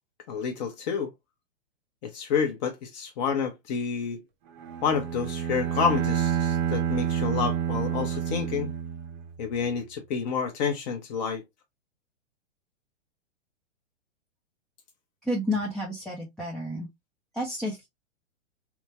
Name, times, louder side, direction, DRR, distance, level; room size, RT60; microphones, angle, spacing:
voice 1, 0.3-1.1 2.0-4.2 4.8-8.7 9.4-11.4, left 6 dB, 35° left, 0.7 m, -29 dB
Bowed string instrument, 4.6-9.4, right 9 dB, 45° right, 0.8 m, -29 dB
voice 2, 15.2-16.9 17.3-17.9, left 1 dB, ahead, 0.4 m, -30 dB
3.4 x 2.0 x 2.9 m
hypercardioid pair, 120°, 36 cm